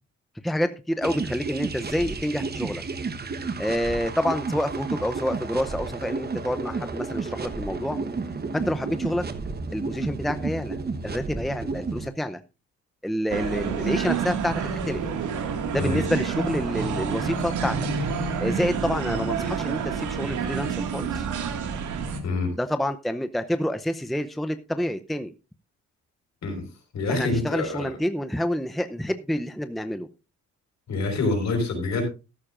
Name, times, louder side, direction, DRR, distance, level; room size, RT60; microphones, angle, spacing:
voice 1, 0.4-2.8 3.6-8.0 8.5-9.2 9.7-10.8 11.0-12.4 13.0-15.0 15.7-17.8 18.4-21.3 22.5-25.3 27.1-30.1, equal, ahead, 0.6 m, -28 dB
sound 1, 1.0-12.1, right 4 dB, 30° right, 1.2 m, -32 dB
sound 2, 13.3-22.2, right 6 dB, 75° right, 2.0 m, -28 dB
voice 2, 22.2-22.5 26.4-26.7 26.9-27.9 30.9-32.0, left 3 dB, 65° left, 4.8 m, -26 dB
13.5 x 12.0 x 2.5 m
cardioid pair, 90°, 30 cm